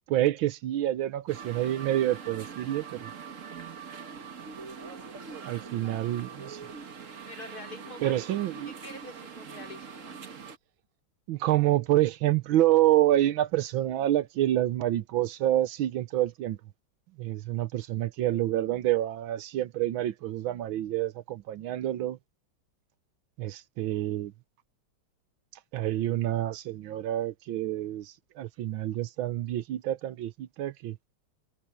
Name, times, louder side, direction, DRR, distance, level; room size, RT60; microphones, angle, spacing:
voice 1, 0.1-3.1 5.4-6.6 8.0-8.7 11.3-16.6 17.2-22.2 23.4-24.3 25.7-31.0, right 13 dB, 80° right, 1.5 m, -27 dB
sound 1, 1.3-10.6, right 6 dB, 40° right, 1.6 m, -43 dB
voice 2, 7.3-8.4 8.7-10.3, left 2 dB, 50° left, 4.1 m, -46 dB
omnidirectional pair, 2.2 m